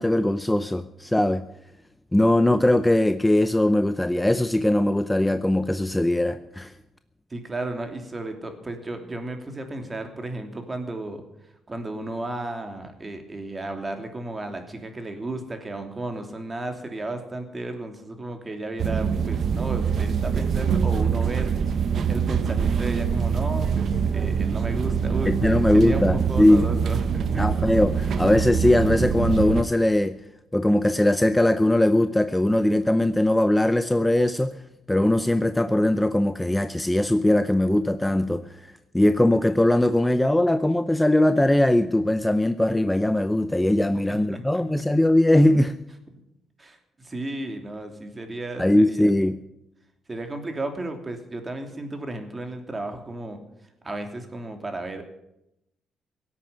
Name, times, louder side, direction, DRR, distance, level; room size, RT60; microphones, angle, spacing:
voice 1, 0.0-1.4 2.1-6.7 25.3-26.6 27.4-30.1 30.5-34.6 34.9-45.8 48.6-49.4, left 1 dB, 10° left, 11 dB, 0.7 m, -20 dB
voice 2, 7.3-11.2 11.7-21.5 22.1-27.5 44.0-44.8 46.6-49.1 50.1-53.4 53.8-55.0, right 2 dB, 25° right, 5 dB, 3.0 m, -34 dB
sound 1, 18.8-29.6, right 6 dB, 60° right, 1.1 m, -24 dB
17.5 x 8.4 x 9.3 m, 0.85 s
cardioid pair, 90°, 0 cm